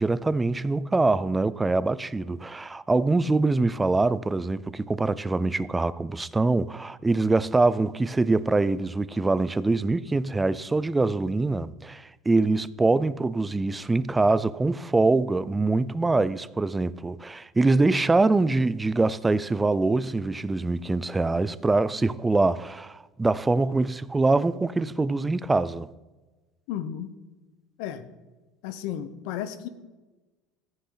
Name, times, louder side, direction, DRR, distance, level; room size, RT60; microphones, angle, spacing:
voice 1, 0.0-25.9, right 3 dB, 10° right, 0.3 m, -24 dB
voice 2, 26.7-27.1 27.8-28.0 28.6-29.7, left 10 dB, 70° left, 0.9 m, -33 dB
14.0 x 9.8 x 3.9 m
cardioid pair, 150°, 0 cm